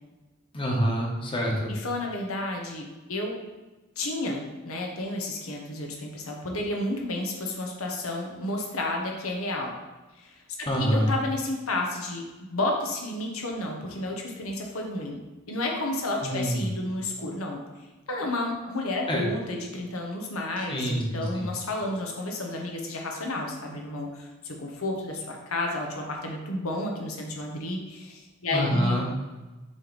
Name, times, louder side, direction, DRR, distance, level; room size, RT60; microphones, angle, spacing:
voice 1, 0.5-1.7 10.7-11.1 16.2-16.6 19.1-19.2 20.7-21.5 28.5-29.1, equal, 25° left, -2 dB, 1.2 m, -26 dB
voice 2, 1.7-3.4 4.0-9.7 10.2-10.4 10.8-15.2 15.5-17.6 18.1-29.0, left 2 dB, 85° left, 1 dB, 1.0 m, -31 dB
7.5 x 3.3 x 4.0 m, 1.2 s
head